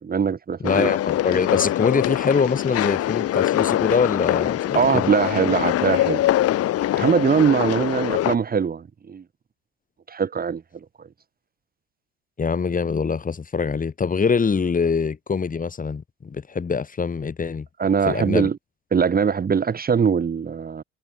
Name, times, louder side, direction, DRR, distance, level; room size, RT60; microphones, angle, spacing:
voice 1, 0.0-0.9 4.7-6.2 7.0-9.2 10.1-10.6 17.8-18.6 18.9-20.8, right 6 dB, 30° right, 3.3 m, -21 dB
sound 1, 0.6-8.4, left 13 dB, 50° left, 6.5 m, -23 dB
voice 2, 0.6-5.1 12.4-17.7 18.0-18.5, left 5 dB, 25° left, 6.6 m, -24 dB
figure-of-eight pair, 65°, 31 cm